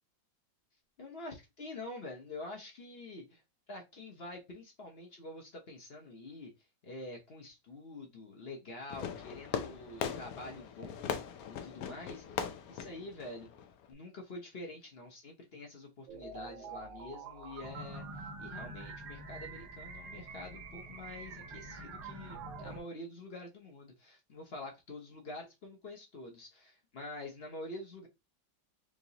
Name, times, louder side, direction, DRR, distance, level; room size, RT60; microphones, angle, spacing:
voice 1, 1.0-3.4 3.7-6.5 6.8-28.1, left 2 dB, 45° left, 0.9 m, -47 dB
Fireworks, 8.9-13.9, left 8 dB, 70° left, 0.9 m, -40 dB
sound 1, 16.1-22.8, right 5 dB, 90° right, 1.5 m, -47 dB
sound 2, 17.6-22.8, equal, 30° right, 0.5 m, -50 dB
4.9 x 2.6 x 2.7 m
omnidirectional pair, 2.0 m